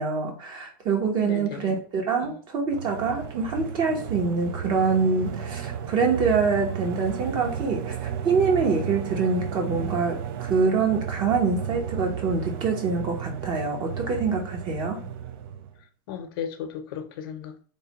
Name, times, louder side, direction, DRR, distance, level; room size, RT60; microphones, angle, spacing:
voice 1, 0.0-15.0, right 4 dB, 40° right, 0.9 m, -25 dB
voice 2, 1.2-1.7 2.2-2.4 14.7-15.1 16.1-17.6, left 8 dB, 75° left, 0.7 m, -36 dB
sound 1, 2.7-15.8, right 8 dB, 70° right, 0.4 m, -33 dB
3.3 x 2.2 x 4.0 m
supercardioid pair, 145°, 12 cm